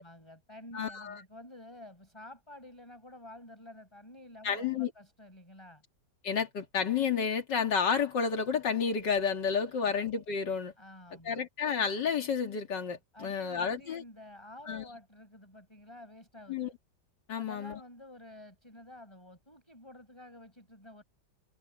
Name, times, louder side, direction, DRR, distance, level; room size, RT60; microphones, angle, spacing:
voice 1, 0.0-5.8 9.7-9.9 10.8-11.4 13.1-16.7 17.3-21.0, left 1 dB, 15° left, 6.3 m, -50 dB
voice 2, 0.7-1.2 4.4-4.9 6.2-10.7 11.2-14.0 14.7-14.8 16.5-16.7 17.3-17.8, left 6 dB, 85° left, 2.8 m, -31 dB
omnidirectional pair, 1.8 m